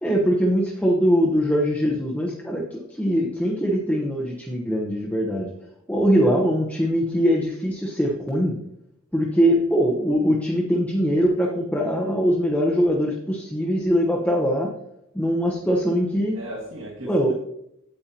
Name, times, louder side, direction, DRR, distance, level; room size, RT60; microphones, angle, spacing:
voice 1, 0.0-5.5 5.9-8.5 9.1-14.7 15.1-16.4 17.0-17.3, equal, 5° left, -2 dB, 0.8 m, -22 dB
voice 2, 6.0-6.4 16.3-17.3, right 1 dB, 65° right, -4 dB, 1.9 m, -37 dB
8.8 x 8.7 x 2.9 m, 0.78 s
head